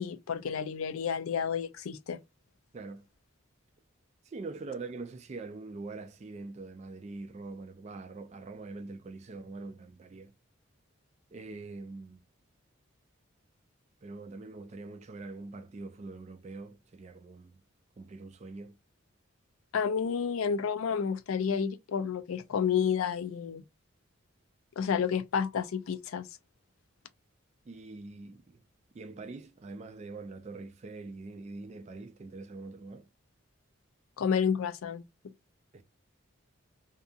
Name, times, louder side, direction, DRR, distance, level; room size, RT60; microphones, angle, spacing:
voice 1, 0.0-2.2 19.7-23.6 24.8-26.3 34.2-35.0, left 7 dB, 80° left, 0.4 m, -30 dB
voice 2, 2.7-3.1 4.2-10.3 11.3-12.2 14.0-17.5 18.0-18.8 27.6-28.6 28.9-33.1 35.7-35.8, right 3 dB, 30° right, 0.3 m, -43 dB
2.7 x 2.4 x 2.4 m
head